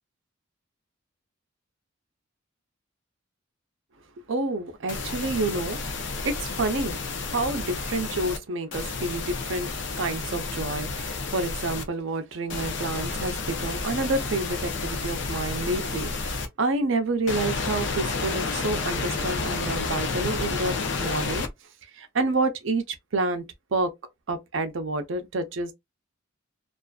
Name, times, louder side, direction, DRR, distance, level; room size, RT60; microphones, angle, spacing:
voice 1, 4.3-9.7 10.0-21.5 21.9-23.4 23.7-23.9 24.3-25.7, right 2 dB, 65° right, 0.5 m, -29 dB
sound 1, 4.9-8.4 8.7-11.8 12.5-16.5 17.3-21.5, left 4 dB, 55° left, 0.5 m, -30 dB
2.4 x 2.4 x 2.3 m
head